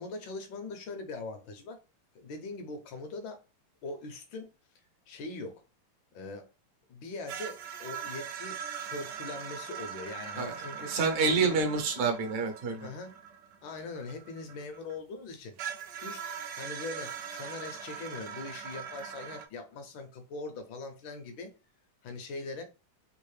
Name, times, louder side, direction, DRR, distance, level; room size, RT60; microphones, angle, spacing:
voice 1, 0.0-1.8 2.1-3.4 3.8-4.5 5.1-5.6 6.1-6.5 6.9-8.6 8.8-11.0 11.4-11.6 12.8-13.1 13.6-15.5 16.0-21.5 22.0-22.6, left 3 dB, 70° left, 1.4 m, -41 dB
sound 1, 7.3-15.0 15.6-19.5, right 8 dB, 80° right, 1.0 m, -41 dB
voice 2, 10.8-12.9, right 4 dB, 60° right, 1.1 m, -28 dB
3.7 x 2.5 x 3.1 m
omnidirectional pair, 2.4 m